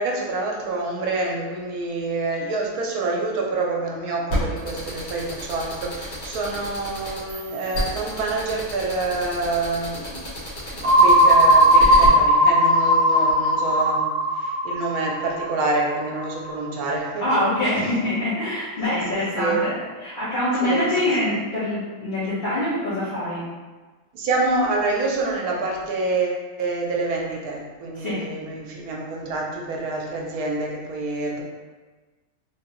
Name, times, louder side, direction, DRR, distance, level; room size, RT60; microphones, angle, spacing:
voice 1, 0.0-10.3 10.7-17.3 18.8-19.6 20.6-20.9 24.1-31.4, right 3 dB, 75° right, -1 dB, 1.2 m, -27 dB
sound 1, 4.3-12.1, equal, 80° left, 1.7 m, -30 dB
sound 2, 10.8-16.5, equal, 55° right, 0.9 m, -17 dB
voice 2, 17.2-23.4 28.0-28.2, left 1 dB, 35° left, -14 dB, 1.2 m, -24 dB
3.5 x 3.0 x 3.0 m, 1.3 s
omnidirectional pair, 1.6 m